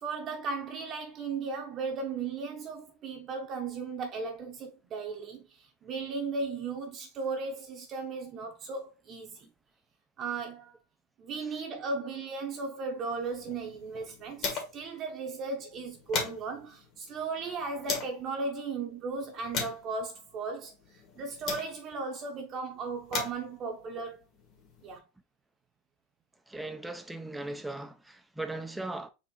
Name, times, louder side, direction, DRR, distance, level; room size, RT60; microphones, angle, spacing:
voice 1, 0.0-9.5 10.2-10.7 11.2-24.2 24.8-25.0, right 4 dB, 35° right, 0.9 m, -36 dB
sound 1, 13.1-14.9 15.2-15.3 15.7-18.2 18.8-22.1 22.8-25.0, left 5 dB, 40° left, 1.8 m, -39 dB
voice 2, 26.5-29.1, right 2 dB, 5° right, 0.5 m, -38 dB
4.3 x 2.8 x 4.3 m
supercardioid pair, 145°, 0 cm